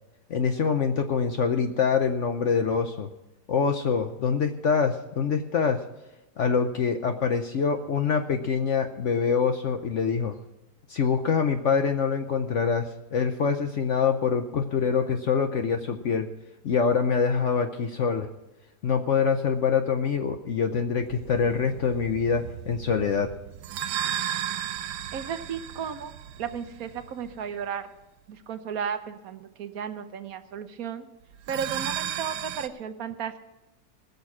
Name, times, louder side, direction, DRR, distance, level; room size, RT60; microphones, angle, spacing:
voice 1, 0.3-3.1 3.5-5.8 6.4-10.3 10.9-16.3 16.6-18.3 18.8-23.3, left 6 dB, 60° left, 7 dB, 0.9 m, -25 dB
sound 1, 21.0-27.6 31.3-32.7, right 10 dB, 85° right, 1.2 m, -35 dB
voice 2, 25.1-26.1 26.4-27.9 28.3-31.1 31.5-33.4, right 7 dB, 65° right, 10 dB, 1.2 m, -34 dB
19.5 x 6.8 x 6.0 m, 1.0 s
omnidirectional pair, 1.8 m